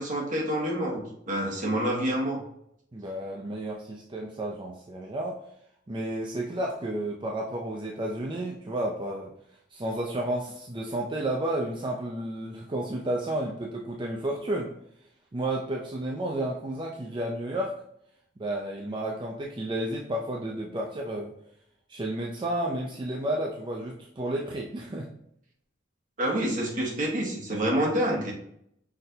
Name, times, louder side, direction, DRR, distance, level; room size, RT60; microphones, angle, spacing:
voice 1, 0.0-2.4 26.2-28.3, right 1 dB, 45° right, -2 dB, 1.3 m, -27 dB
voice 2, 2.9-5.4 5.9-9.3 9.7-14.7 15.3-17.8 18.4-21.3 21.9-25.1, right 1 dB, 25° right, -1 dB, 0.5 m, -31 dB
5.8 x 3.3 x 2.8 m, 0.73 s
head